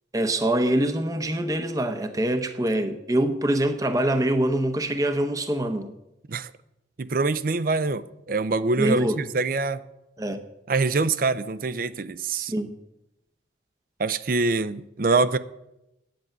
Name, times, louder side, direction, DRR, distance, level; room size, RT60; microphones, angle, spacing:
voice 1, 0.1-5.9 8.8-9.2 10.2-10.4 12.3-12.7, right 1 dB, 20° right, 0.8 m, -24 dB
voice 2, 7.0-9.8 10.7-12.5 14.0-15.4, right 3 dB, 50° right, 0.5 m, -24 dB
10.5 x 9.4 x 7.3 m
head